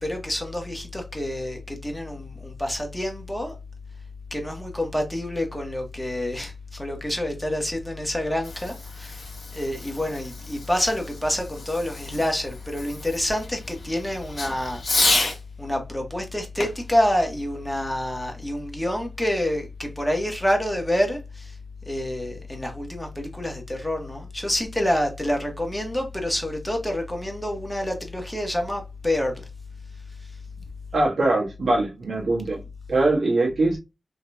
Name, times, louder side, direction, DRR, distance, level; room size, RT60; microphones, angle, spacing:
voice 1, 0.0-3.5 4.3-15.2 15.6-21.5 21.9-29.4, left 1 dB, 10° left, 1.4 m, -27 dB
Fireworks, 8.1-15.4 16.6-18.2, left 2 dB, 70° left, 1.4 m, -31 dB
voice 2, 30.9-32.6 32.9-33.8, right 2 dB, 80° right, 1.4 m, -22 dB
3.8 x 2.8 x 2.3 m
cardioid pair, 40°, 0 cm